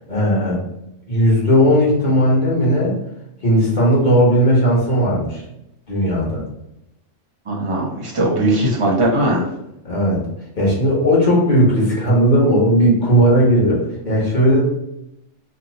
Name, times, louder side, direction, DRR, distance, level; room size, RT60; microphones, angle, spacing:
voice 1, 0.1-0.6 1.1-2.9 3.4-5.4 5.9-6.4 9.8-10.3 10.5-14.6, equal, 40° left, -6 dB, 1.2 m, -16 dB
voice 2, 7.5-9.5, right 1 dB, 30° right, -3 dB, 0.7 m, -19 dB
2.8 x 2.2 x 3.9 m, 0.84 s
omnidirectional pair, 1.3 m